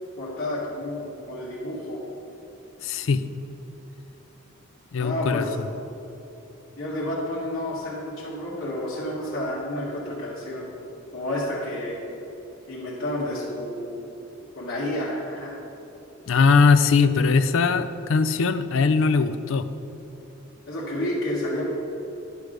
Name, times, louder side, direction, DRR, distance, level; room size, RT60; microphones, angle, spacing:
voice 1, 0.2-2.0 5.0-5.7 6.8-10.7 11.1-12.0 12.7-13.9 14.6-15.6 20.7-21.6, left 1 dB, 50° left, -10 dB, 1.6 m, -30 dB
voice 2, 2.8-3.2 4.9-5.4 16.3-19.7, left 4 dB, 70° left, 11 dB, 0.4 m, -20 dB
10.5 x 4.8 x 6.5 m, 3.0 s
head